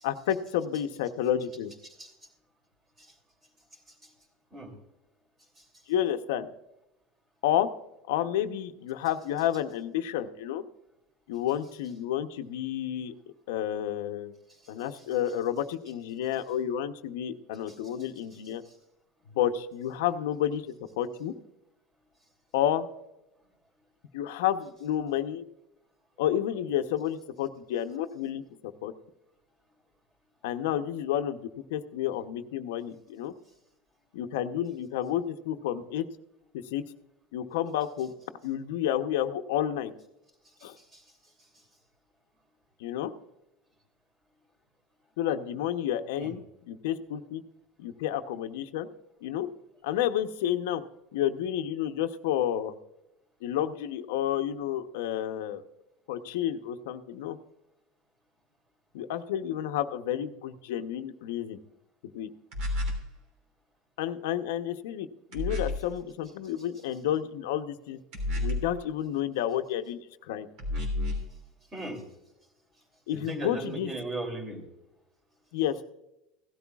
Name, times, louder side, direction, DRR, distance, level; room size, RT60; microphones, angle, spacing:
voice 1, 0.0-1.7 5.9-6.5 7.4-7.7 8.1-10.6 11.3-13.1 13.5-14.3 14.7-18.6 19.3-20.6 21.0-21.3 22.5-22.9 24.1-25.4 26.2-28.9 30.4-33.3 34.1-36.1 36.7-36.8 37.3-38.1 38.4-39.9 40.6-40.8 42.8-43.1 45.2-46.4 46.7-47.4 47.8-48.9 49.2-49.5 49.8-50.8 51.1-52.7 53.4-55.6 56.1-57.4 58.9-61.6 62.1-62.3 64.0-65.1 65.3-68.0 68.4-70.5 73.1-73.9 75.5-75.8, left 11 dB, 85° left, 7 dB, 0.8 m, -30 dB
voice 2, 1.8-2.3 3.0-3.2 3.7-4.1 4.5-4.7 5.6-5.8 14.5-15.1 17.7-18.0 18.6-18.8 40.4-41.7 46.1-46.3 71.7-72.0 73.1-74.6, right 2 dB, 20° right, 4 dB, 2.9 m, -40 dB
sound 1, 62.5-63.1 65.3-65.9 68.1-68.8 70.6-71.3, left 2 dB, 55° right, 3.2 m, -30 dB
16.5 x 12.5 x 2.4 m, 0.90 s
supercardioid pair, 160°, 0 cm